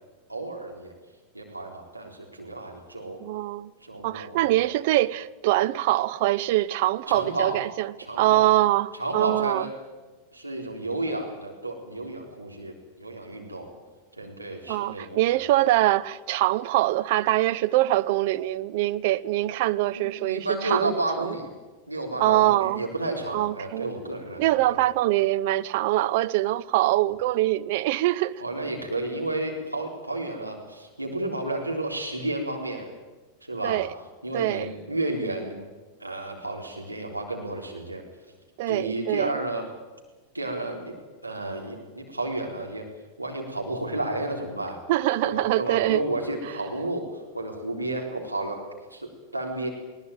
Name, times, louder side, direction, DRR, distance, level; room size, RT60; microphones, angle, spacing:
voice 1, 0.3-0.9 1.3-3.2 3.8-4.5 7.1-7.6 8.1-8.5 9.0-9.7 10.3-13.7 14.2-15.4 20.0-21.5 21.9-24.8 28.4-32.9 33.4-33.8 34.2-35.6 36.0-38.0 38.7-39.7 40.3-40.9 41.2-42.9 43.2-44.8 45.2-48.6 48.9-49.7, right 2 dB, 85° right, 3.8 m, -32 dB
voice 2, 3.2-3.7 4.0-9.7 14.7-21.4 22.2-22.8 23.3-23.9 24.4-28.4 33.6-33.9 34.3-34.7 38.6-39.4 44.9-46.0, right 16 dB, 50° right, 0.7 m, -24 dB
20.5 x 19.5 x 9.2 m
figure-of-eight pair, 90°, 0 cm